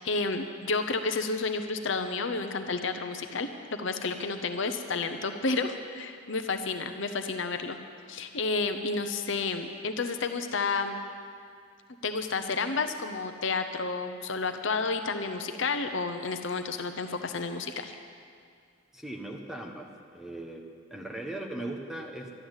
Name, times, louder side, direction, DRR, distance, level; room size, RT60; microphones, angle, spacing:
voice 1, 0.0-3.5 3.8-7.8 8.1-11.0 12.0-17.9, left 4 dB, 60° left, 7 dB, 0.8 m, -31 dB
voice 2, 18.9-19.9 20.1-20.6 20.9-22.3, right 1 dB, ahead, 0 dB, 1.3 m, -38 dB
12.5 x 11.0 x 8.0 m, 2.2 s
head